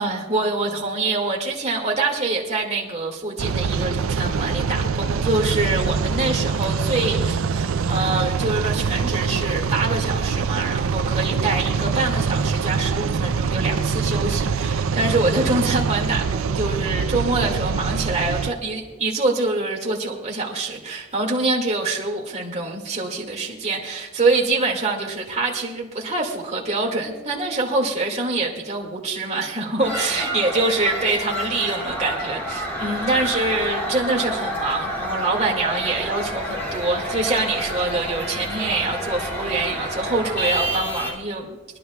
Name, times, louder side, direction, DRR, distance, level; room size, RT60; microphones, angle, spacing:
voice 1, 0.0-41.8, right 2 dB, 35° right, 0 dB, 2.1 m, -25 dB
sound 1, 3.4-18.5, right 5 dB, 65° right, 0.4 m, -24 dB
sound 2, 29.8-41.1, equal, 10° left, 3.2 m, -29 dB
24.0 x 11.0 x 2.3 m, 1.2 s
head